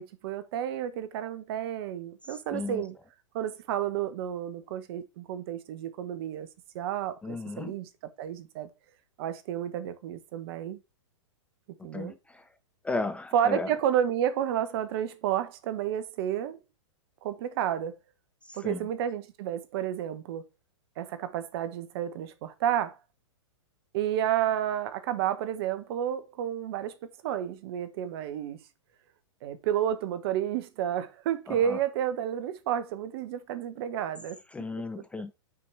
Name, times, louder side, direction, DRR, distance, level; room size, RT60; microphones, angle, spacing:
voice 1, 0.0-3.0 3.3-6.5 6.7-7.9 8.2-8.7 9.2-10.8 11.8-12.1 13.3-16.6 17.2-17.9 18.5-20.4 21.0-22.9 23.9-27.0 27.2-28.6 29.4-34.4, right 10 dB, 50° right, 1.1 m, -31 dB
voice 2, 2.5-2.8 7.2-7.7 11.9-12.1 12.8-13.7 18.6-18.8 31.7-31.8 34.5-35.3, left 3 dB, 10° left, 0.4 m, -34 dB
6.1 x 4.8 x 4.7 m
hypercardioid pair, 115°, 16 cm